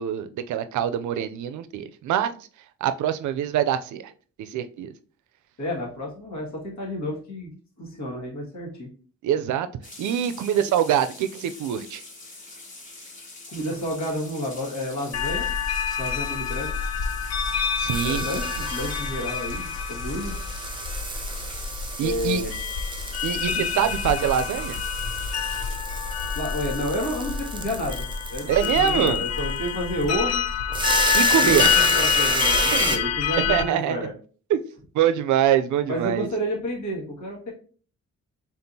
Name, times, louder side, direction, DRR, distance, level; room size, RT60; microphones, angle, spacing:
voice 1, 0.0-2.3 2.8-4.1 4.4-4.9 9.2-9.7 10.0-12.0 17.8-18.2 22.0-22.4 23.2-24.8 28.5-29.2 31.1-31.7 32.7-32.8 33.4-34.0 34.5-34.6 34.9-36.3, right 10 dB, 85° right, 0.5 m, -24 dB
voice 2, 5.6-7.5 7.8-8.9 13.5-15.5 16.0-16.7 18.0-20.4 22.0-22.6 26.3-30.5 31.4-34.1 35.9-37.5, equal, 75° left, 1.8 m, -30 dB
sound 1, 9.8-25.8, left 2 dB, 25° left, 1.3 m, -44 dB
sound 2, 15.1-33.6, left 8 dB, 60° left, 0.5 m, -27 dB
sound 3, 17.1-33.0, right 3 dB, 15° right, 0.4 m, -31 dB
4.4 x 3.5 x 2.7 m
cardioid pair, 135°, 29 cm